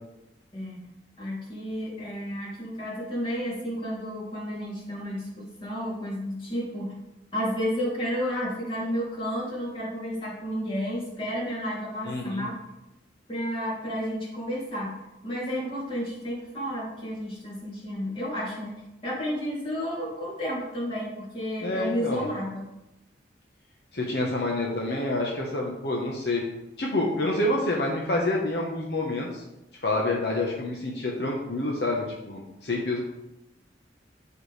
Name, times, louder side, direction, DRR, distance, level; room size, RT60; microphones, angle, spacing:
voice 1, 1.2-6.9 7.3-12.6 13.3-15.0 15.2-18.7 19.0-22.6, equal, 30° left, -5 dB, 2.9 m, -31 dB
voice 2, 12.0-12.5 21.6-22.3 23.9-26.4 26.8-29.4 29.8-33.0, left 2 dB, 65° left, -2 dB, 1.2 m, -28 dB
13.0 x 4.8 x 3.4 m, 0.93 s
head